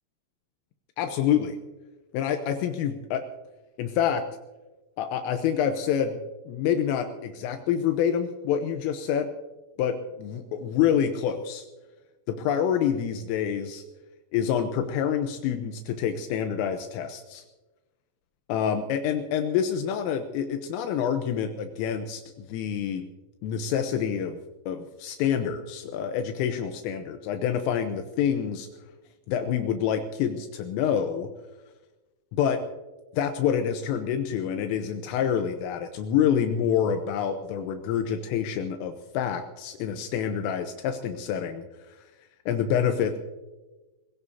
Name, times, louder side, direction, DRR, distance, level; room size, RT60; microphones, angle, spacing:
voice 1, 1.0-1.6 2.1-3.2 3.8-4.2 5.0-6.2 6.5-9.3 9.8-11.7 12.3-13.8 14.3-17.4 18.5-23.1 23.4-24.4 24.7-28.7 29.3-31.3 32.3-32.6 33.1-42.0 42.5-43.2, left 8 dB, 80° left, 6 dB, 3.4 m, -27 dB
25.5 x 16.5 x 2.8 m, 1.1 s
omnidirectional pair, 6.0 m